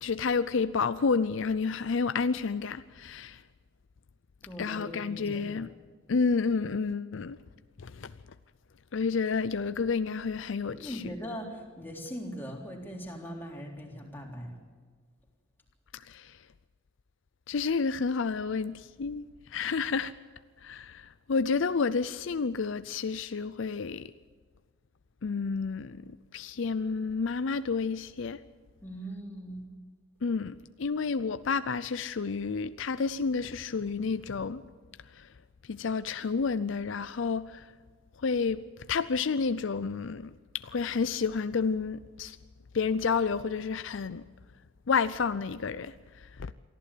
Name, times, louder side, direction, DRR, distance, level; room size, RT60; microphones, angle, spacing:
voice 1, 0.0-3.4 4.6-5.7 6.1-7.4 7.8-8.1 8.9-11.0 15.9-16.4 17.5-20.1 20.6-24.1 25.2-28.4 30.2-34.6 35.1-35.3 35.6-37.7 38.2-38.6 38.9-42.4 42.7-44.2 44.9-46.5, left 5 dB, 65° left, 0.5 m, -30 dB
voice 2, 4.4-5.6 10.7-14.6 28.8-29.7, equal, 10° left, 3.6 m, -40 dB
23.5 x 14.5 x 8.5 m
head